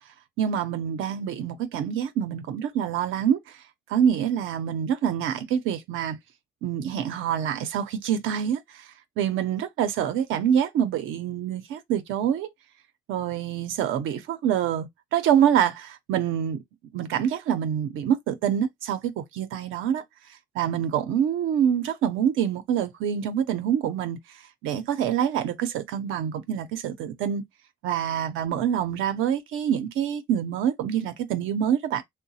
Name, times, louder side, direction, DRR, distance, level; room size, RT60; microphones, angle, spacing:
voice 1, 0.4-3.4 3.9-6.2 6.6-8.6 9.2-12.5 13.1-16.6 16.9-20.0 20.5-24.2 24.6-27.4 27.8-32.0, right 9 dB, 90° right, 0.6 m, -26 dB
2.9 x 2.1 x 2.7 m
cardioid pair, 90°, 20 cm